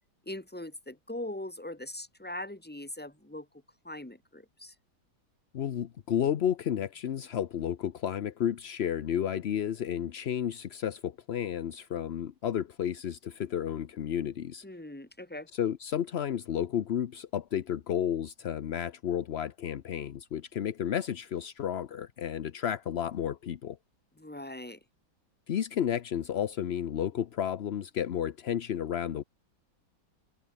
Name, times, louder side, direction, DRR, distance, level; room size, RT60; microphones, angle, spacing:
voice 1, 0.2-3.5 3.8-4.7 14.6-15.5 24.2-24.8, left 1 dB, 5° left, 1.5 m, -41 dB
voice 2, 5.5-14.6 15.5-23.8 25.5-29.2, left 9 dB, 55° left, 0.7 m, -32 dB
omnidirectional pair, 1.8 m